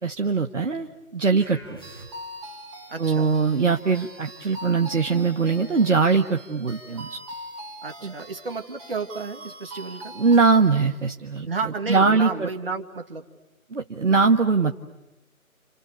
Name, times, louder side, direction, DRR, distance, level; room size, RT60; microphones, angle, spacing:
voice 1, 0.0-1.8 3.0-7.2 8.0-8.1 10.2-11.5 11.9-12.5 13.7-14.7, right 4 dB, 60° right, 4 dB, 1.6 m, -21 dB
sound 1, 1.4-2.6, right 1 dB, 15° left, 1.0 m, -45 dB
sound 2, 1.8-10.9, right 1 dB, 20° right, 4.4 m, -42 dB
voice 2, 2.9-3.3 7.8-10.1 11.4-13.2, right 4 dB, 40° right, 4 dB, 2.6 m, -32 dB
30.0 x 29.0 x 6.8 m, 1.0 s
figure-of-eight pair, 165°, 43 cm